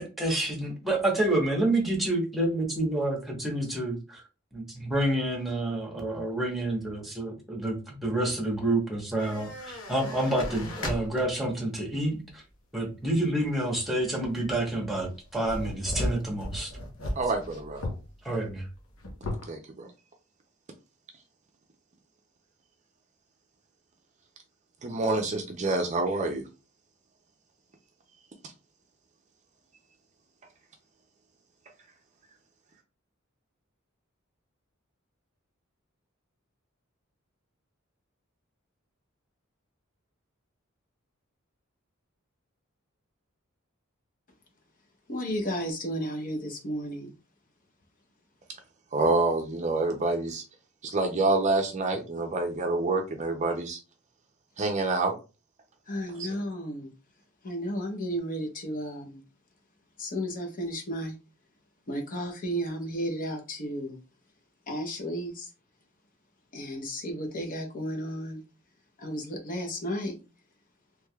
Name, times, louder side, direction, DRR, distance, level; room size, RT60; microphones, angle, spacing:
voice 1, 0.0-4.2 4.5-12.4 12.7-16.7 18.2-18.7, right 1 dB, ahead, 1.1 m, -28 dB
sound 1, 9.2-11.6 12.1-12.2 14.2-14.6 15.0-18.1 18.4-18.5 18.8-19.5, left 1 dB, 75° left, 0.9 m, -36 dB
voice 2, 17.2-17.8 19.5-19.9 24.8-26.4 48.9-50.4 50.8-53.8 54.6-55.2 56.2-56.3, right 3 dB, 35° right, 0.5 m, -27 dB
voice 3, 45.1-47.1 55.9-56.9 57.4-59.2 60.0-61.2 61.9-64.0 64.7-65.5 66.5-68.4 69.0-70.1, equal, 40° left, 0.8 m, -33 dB
3.4 x 3.1 x 2.3 m
head